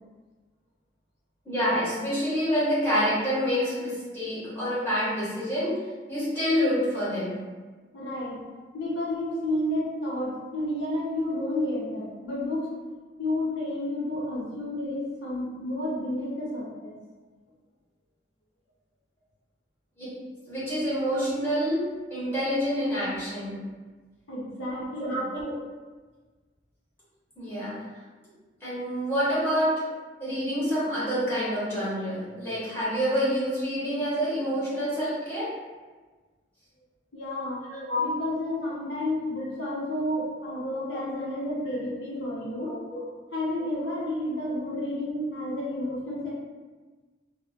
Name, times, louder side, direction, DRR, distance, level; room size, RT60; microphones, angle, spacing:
voice 1, 1.4-5.8 6.1-7.4 20.0-20.1 20.5-23.7 24.7-25.5 27.4-27.8 28.6-29.7 30.2-35.5 37.7-38.0 40.9-41.0 42.7-43.0, equal, 10° left, -11 dB, 1.0 m, -27 dB
voice 2, 7.9-8.4 8.7-12.7 13.2-17.0 24.3-25.2 37.1-37.7 38.0-42.8 43.3-46.3, left 1 dB, 85° left, -5 dB, 0.7 m, -31 dB
2.5 x 2.0 x 2.4 m, 1.3 s
head